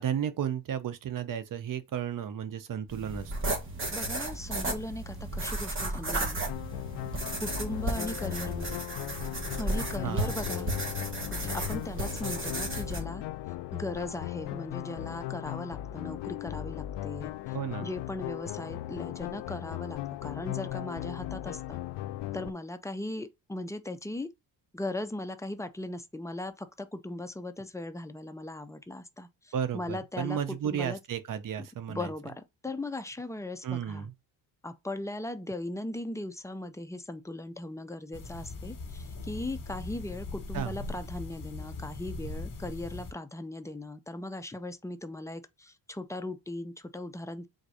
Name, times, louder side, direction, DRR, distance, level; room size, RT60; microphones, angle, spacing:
voice 1, 0.0-3.3 10.0-10.3 17.5-17.9 29.5-32.1 33.6-34.1 40.5-40.7, right 9 dB, 50° right, 0.8 m, -33 dB
sound 1, 2.9-13.0, right 2 dB, 30° right, 1.4 m, -34 dB
voice 2, 3.9-6.4 7.4-8.8 9.6-10.7 11.3-13.2 13.7-17.3 17.8-21.8 22.3-24.3 24.7-31.0 31.9-34.1 34.6-47.5, left 1 dB, 10° left, 0.4 m, -38 dB
sound 2, 6.5-22.5, left 15 dB, 75° left, 0.5 m, -38 dB
sound 3, 38.1-43.1, left 3 dB, 50° left, 1.4 m, -40 dB
3.9 x 2.6 x 4.8 m
cardioid pair, 115°, 42 cm